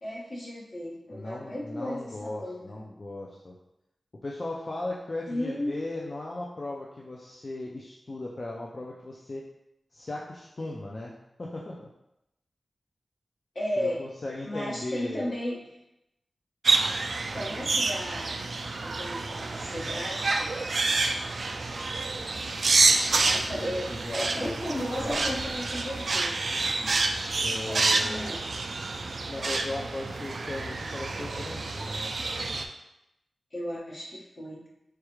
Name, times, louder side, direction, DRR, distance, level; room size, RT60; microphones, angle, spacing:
voice 1, 0.0-2.6 5.3-5.7 13.5-14.0 14.4-15.6 17.2-18.4 18.8-20.5 23.3-23.9 24.1-26.3 27.4-28.4 33.5-34.6, left 1 dB, 70° left, -6 dB, 1.4 m, -34 dB
voice 2, 1.1-3.6 4.2-9.5 9.9-11.1 11.4-11.9 13.8-15.3 22.6-25.2 26.8-28.5 29.3-32.1, left 2 dB, 50° left, -3 dB, 0.5 m, -37 dB
sound 1, 16.6-32.6, right 3 dB, 75° right, 0.3 m, -28 dB
4.6 x 2.3 x 3.1 m, 0.84 s
cardioid pair, 60°, 0 cm